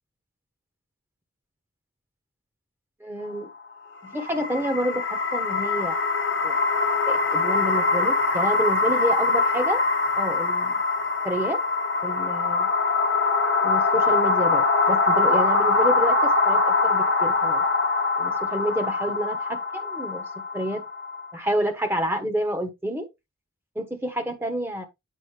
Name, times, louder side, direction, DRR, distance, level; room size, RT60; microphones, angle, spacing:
voice 1, 3.0-3.5 4.0-6.0 6.4-6.6 7.1-9.8 10.2-10.8 11.2-11.6 12.0-12.7 13.6-17.6 18.2-20.8 21.3-23.1 23.7-24.8, equal, 10° right, 1.1 m, -29 dB
sound 1, 4.1-21.2, left 3 dB, 55° left, 1.4 m, -23 dB
8.3 x 5.3 x 3.3 m
head